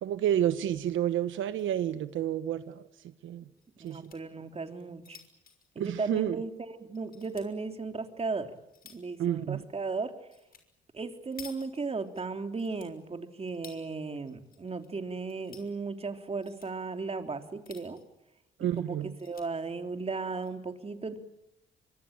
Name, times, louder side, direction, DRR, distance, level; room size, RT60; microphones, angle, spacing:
voice 1, 0.0-2.9 3.2-3.4 3.8-4.0 5.8-6.4 9.2-9.6 18.6-19.1, right 11 dB, 80° right, 12 dB, 1.1 m, -30 dB
sound 1, 1.3-1.8 2.1-2.2 2.5-2.6 3.6-4.2 4.7-6.5 6.9-7.5 8.1-9.2 10.3-10.6 10.9-12.2 12.5-13.8 14.3-14.9 15.2-15.7 16.2-16.7 17.4-18.1 18.6-18.7 19.0-19.5 20.2-20.5, left 6 dB, 50° left, 6.0 m, -53 dB
voice 2, 3.9-5.2 5.7-8.5 8.9-10.1 10.9-18.0 18.6-21.2, right 4 dB, 30° right, 6 dB, 3.3 m, -36 dB
24.5 x 24.0 x 8.9 m, 0.85 s
cardioid pair, 90°, 20 cm